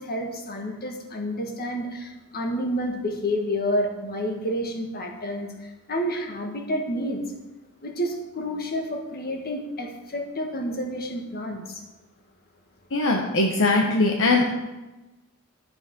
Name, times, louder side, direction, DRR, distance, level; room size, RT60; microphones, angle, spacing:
voice 1, 0.0-7.2 7.8-11.8, equal, 45° left, 3 dB, 1.6 m, -29 dB
voice 2, 12.9-14.5, left 2 dB, 65° left, 1 dB, 1.1 m, -21 dB
11.5 x 7.0 x 5.2 m, 1.1 s
head